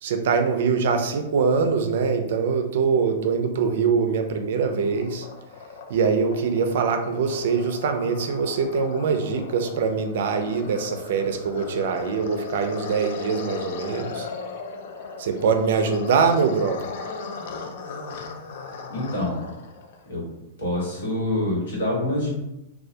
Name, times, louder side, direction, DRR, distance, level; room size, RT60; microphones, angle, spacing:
voice 1, 0.0-5.3 5.9-14.3 15.2-16.9, right 5 dB, 65° right, 6 dB, 0.3 m, -23 dB
sound 1, 4.3-20.0, left 4 dB, 60° left, 0.3 m, -38 dB
voice 2, 18.9-19.4 20.1-20.3 20.6-22.3, left 1 dB, 80° left, -4 dB, 1.2 m, -26 dB
2.2 x 2.1 x 2.6 m, 0.88 s
hypercardioid pair, 135°, 0 cm